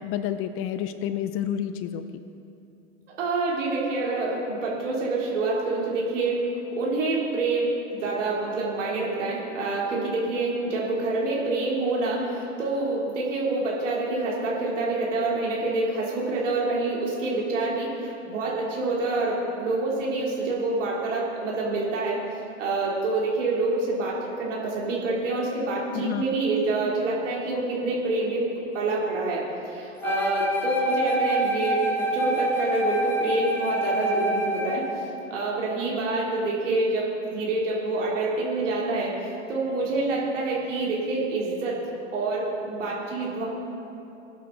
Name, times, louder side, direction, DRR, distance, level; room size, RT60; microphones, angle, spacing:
voice 1, 0.0-2.2 25.9-26.2, left 10 dB, 35° left, 11 dB, 0.6 m, -29 dB
voice 2, 3.2-22.2 22.6-28.5 28.7-31.8 32.1-34.8 35.3-41.8 42.1-43.5, right 2 dB, 75° right, -5 dB, 3.1 m, -27 dB
Wind instrument woodwind instrument, 30.0-34.9, right 1 dB, 5° left, 1.3 m, -26 dB
19.5 x 9.2 x 3.9 m, 2.8 s
hypercardioid pair, 95°, 37 cm